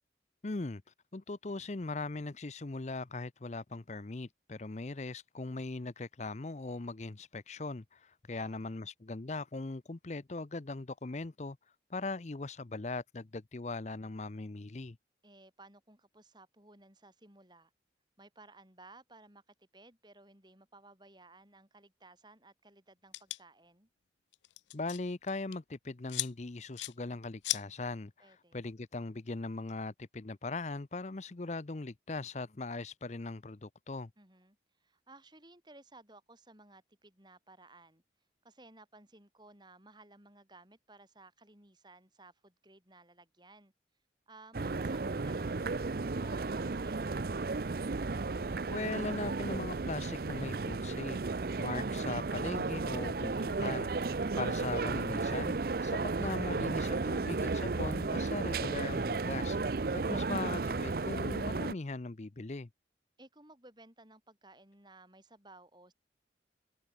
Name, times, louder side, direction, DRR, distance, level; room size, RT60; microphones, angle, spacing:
voice 1, 0.4-0.8 1.1-11.6 11.9-15.0 24.7-34.1 48.7-51.2 51.6-55.6 55.8-62.7, left 3 dB, 40° left, 0.6 m, -40 dB
voice 2, 8.3-8.8 15.2-17.7 18.2-23.9 28.2-28.7 34.2-38.0 38.4-43.7 44.3-47.6 63.2-65.9, right 2 dB, 25° right, 6.2 m, -58 dB
sound 1, 23.1-23.4 24.3-25.0 25.3-25.6 26.1-26.3 26.8-26.9 27.4-27.6, left 17 dB, 80° left, 0.4 m, -35 dB
sound 2, 44.5-61.7, right 3 dB, 55° right, 0.6 m, -34 dB
head